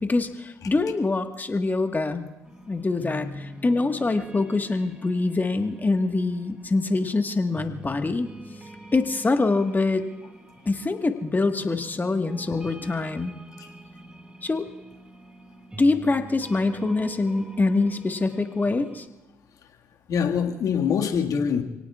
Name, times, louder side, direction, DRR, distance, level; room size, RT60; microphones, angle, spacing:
voice 1, 0.1-2.2 2.7-8.3 8.9-10.0 10.6-13.4 14.4-14.7 15.8-19.1, left 3 dB, 30° left, 6 dB, 1.5 m, -24 dB
sound 1, 2.4-19.1, right 1 dB, 15° right, 2.2 m, -44 dB
voice 2, 20.1-21.6, left 7 dB, 65° left, 2 dB, 1.9 m, -24 dB
29.0 x 18.0 x 2.4 m, 1.0 s
hypercardioid pair, 45°, 6 cm